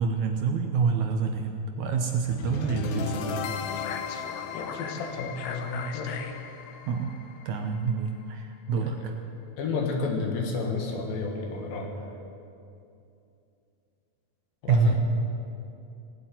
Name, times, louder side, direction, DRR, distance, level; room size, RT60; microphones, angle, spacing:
voice 1, 0.0-3.5 6.9-7.1 7.5-9.1 14.7-14.9, right 5 dB, 70° right, 5 dB, 1.9 m, -27 dB
sound 1, 2.2-8.3, left 7 dB, 70° left, 2.0 m, -36 dB
voice 2, 4.5-6.2 8.8-9.1 9.6-11.9 14.6-14.9, left 4 dB, 90° left, 1 dB, 3.5 m, -31 dB
19.0 x 8.3 x 9.1 m, 2.6 s
omnidirectional pair, 4.0 m